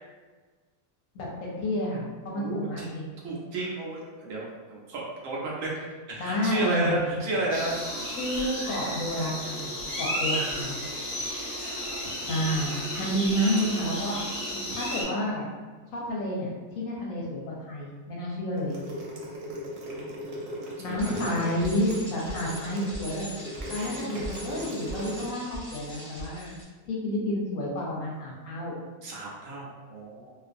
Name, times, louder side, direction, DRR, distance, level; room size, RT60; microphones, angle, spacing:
voice 1, 1.1-3.1 6.2-7.1 8.2-10.8 12.0-14.2 14.5-15.5 15.9-19.0 20.8-23.3 23.7-26.5 26.8-28.8, equal, 70° left, -4 dB, 0.9 m, -30 dB
voice 2, 2.3-2.9 3.2-5.7 6.1-7.7 11.6-12.1 20.2-21.5 29.0-30.3, right 2 dB, 70° right, -4 dB, 0.9 m, -32 dB
sound 1, 7.5-15.0, equal, 35° left, 0.5 m, -33 dB
sound 2, 18.6-25.2, right 1 dB, 90° right, 1.1 m, -38 dB
Bicycle, 21.0-26.6, right 1 dB, 10° left, 0.9 m, -41 dB
2.5 x 2.4 x 2.5 m, 1.4 s
omnidirectional pair, 1.6 m